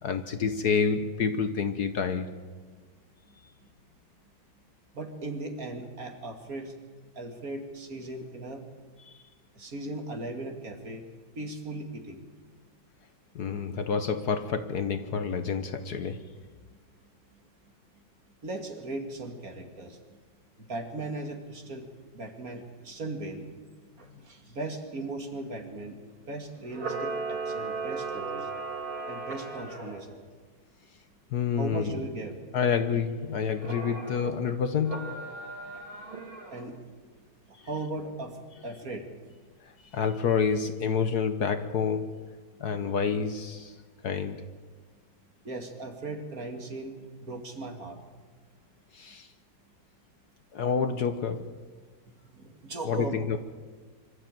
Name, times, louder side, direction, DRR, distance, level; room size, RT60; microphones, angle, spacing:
voice 1, 0.0-2.3 9.0-9.2 13.3-16.3 31.3-32.1 32.5-35.1 37.6-37.7 39.6-42.2 42.6-43.8 44.0-44.5 48.9-49.3 50.5-51.6 52.8-53.4, left 6 dB, 60° left, 10 dB, 1.3 m, -28 dB
voice 2, 4.9-6.7 7.2-8.6 9.5-11.0 11.4-12.2 18.4-20.0 20.6-21.9 22.1-23.4 24.0-26.0 26.3-28.5 29.0-30.2 31.6-32.4 36.5-36.8 37.5-39.1 45.4-48.0 52.4-53.2, right 2 dB, 45° right, 4 dB, 2.5 m, -38 dB
Camera, 26.7-30.0 33.6-34.3 34.8-36.7, right 4 dB, 85° right, 4.7 m, -36 dB
25.0 x 13.5 x 9.0 m, 1.4 s
omnidirectional pair, 2.1 m